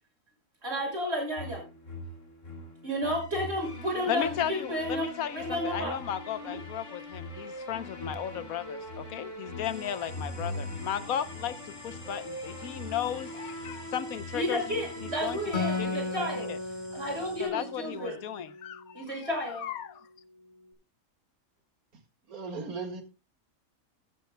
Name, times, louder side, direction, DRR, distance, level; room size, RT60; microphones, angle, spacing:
voice 1, 0.6-1.6 2.8-5.1 5.3-6.0 6.4-6.6 14.3-16.5 16.9-18.2 18.9-19.6, equal, 45° right, 1 dB, 6.5 m, -32 dB
sound 1, 1.4-15.8, left 1 dB, 55° left, 3.0 m, -41 dB
voice 2, 4.1-16.6 17.4-20.1, left 10 dB, 75° left, 14 dB, 1.3 m, -35 dB
sound 2, 9.6-17.5, right 1 dB, ahead, 6.2 m, -52 dB
Acoustic guitar, 15.5-19.0, left 3 dB, 35° left, 5.1 m, -35 dB
voice 3, 22.3-23.0, right 4 dB, 80° right, 6 dB, 2.3 m, -36 dB
14.5 x 13.5 x 2.2 m, 0.29 s
omnidirectional pair, 1.5 m